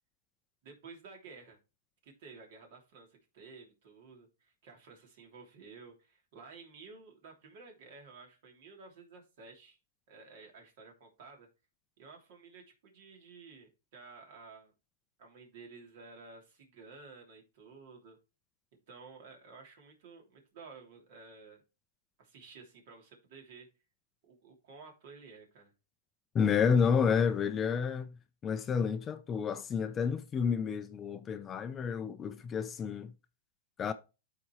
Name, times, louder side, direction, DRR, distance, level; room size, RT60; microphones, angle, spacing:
voice 1, 0.6-1.6 2.0-9.8 10.1-11.5 12.0-14.7 15.2-18.2 18.9-21.6 22.2-23.7 24.2-25.7, right 4 dB, 55° right, 3.0 m, -53 dB
voice 2, 26.3-28.2 28.4-33.1 33.8-33.9, left 6 dB, 20° left, 0.5 m, -30 dB
12.0 x 4.2 x 3.1 m
hypercardioid pair, 140°, 0 cm